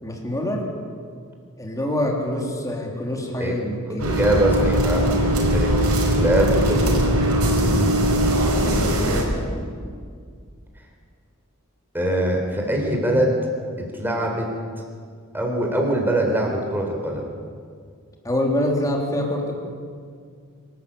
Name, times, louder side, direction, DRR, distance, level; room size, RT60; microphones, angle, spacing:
voice 1, 0.0-0.6 1.6-4.1 8.6-8.9 18.2-19.6, left 1 dB, 15° left, 0 dB, 3.5 m, -25 dB
voice 2, 3.9-5.0 5.4-5.8 6.1-6.9 11.9-13.4 13.8-14.5 15.3-17.2, right 1 dB, 10° right, 0 dB, 4.0 m, -22 dB
sound 1, 4.0-9.2, right 1 dB, 90° right, 4.8 m, -20 dB
25.5 x 13.0 x 8.7 m, 2.1 s
head